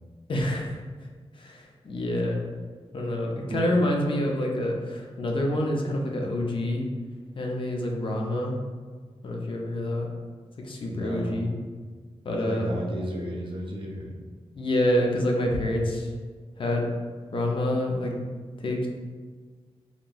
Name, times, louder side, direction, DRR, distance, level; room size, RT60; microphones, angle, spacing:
voice 1, 0.3-1.1 1.3-2.4 2.9-6.8 7.4-8.5 9.2-10.1 10.6-11.5 12.2-12.7 14.5-16.1 16.6-16.9 17.3-18.1 18.6-18.9, left 1 dB, 50° left, 0 dB, 0.4 m, -27 dB
voice 2, 10.9-11.4 12.4-14.1, right 1 dB, 50° right, 0 dB, 0.4 m, -34 dB
2.9 x 2.6 x 2.3 m, 1.5 s
wide cardioid pair, 110°, 11 cm